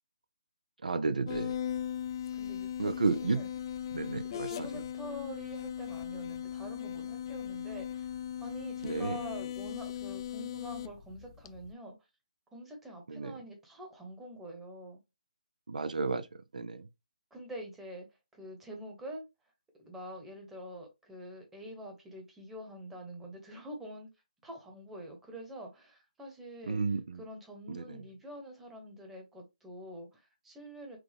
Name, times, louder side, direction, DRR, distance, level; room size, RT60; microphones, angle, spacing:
voice 1, 0.8-1.6 2.8-3.4 3.9-4.7 8.8-9.2 13.1-13.3 15.7-16.3 16.5-16.9 26.7-27.2 27.7-28.0, right 3 dB, 80° right, 0.6 m, -32 dB
sound 1, 1.3-11.7, left 10 dB, 35° left, 0.3 m, -38 dB
voice 2, 2.3-3.5 4.2-11.9 12.5-15.0 17.3-18.1 18.3-19.2 19.8-24.1 24.4-31.0, right 1 dB, 5° right, 1.1 m, -46 dB
6.0 x 2.4 x 3.5 m
figure-of-eight pair, 155°, 4 cm